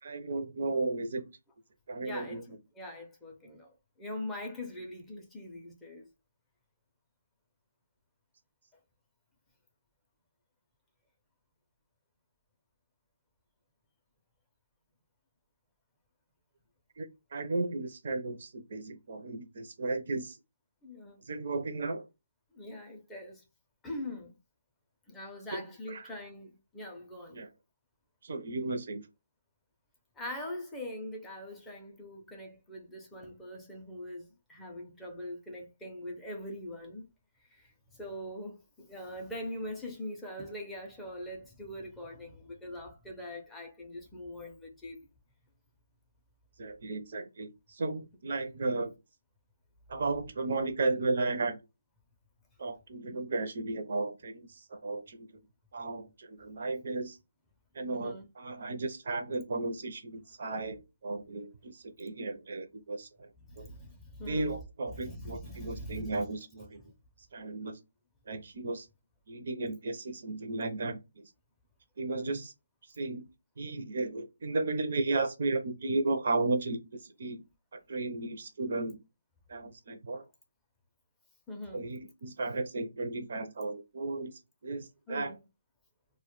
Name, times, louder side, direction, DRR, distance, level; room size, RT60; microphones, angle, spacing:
voice 1, 0.0-1.3 1.9-2.6 17.0-20.4 21.3-22.1 25.5-26.0 27.3-27.5 28.2-29.0 46.6-48.9 49.9-51.6 52.6-55.4 55.7-57.2 57.7-63.3 63.6-63.7 64.3-66.8 67.3-67.8 68.3-68.9 69.3-71.3 72.0-72.5 73.0-73.3 73.6-77.4 77.9-79.0 79.5-80.2 81.7-84.3 84.6-85.3, right 3 dB, 50° right, 0.4 m, -34 dB
voice 2, 2.0-2.4 2.8-3.7 4.0-6.1 20.8-21.2 22.5-23.4 23.8-24.4 25.1-27.4 30.2-37.1 37.5-45.1 57.9-58.3 63.5-64.5 64.9-66.2 81.5-81.9 85.1-85.4, left 1 dB, 5° left, 0.4 m, -42 dB
2.1 x 2.0 x 2.9 m
hypercardioid pair, 165°, 0 cm